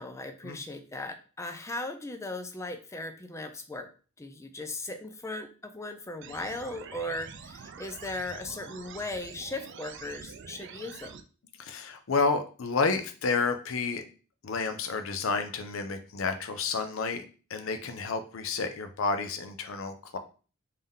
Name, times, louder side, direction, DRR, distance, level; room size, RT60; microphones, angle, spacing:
voice 1, 0.0-3.9 4.2-11.2, left 2 dB, 15° left, 8 dB, 0.4 m, -38 dB
sound 1, 6.2-11.2, right 6 dB, 60° right, 0.4 m, -46 dB
voice 2, 11.6-14.0 14.4-17.2 17.5-20.2, left 4 dB, 70° left, 8 dB, 0.5 m, -30 dB
3.6 x 2.8 x 3.6 m, 0.37 s
head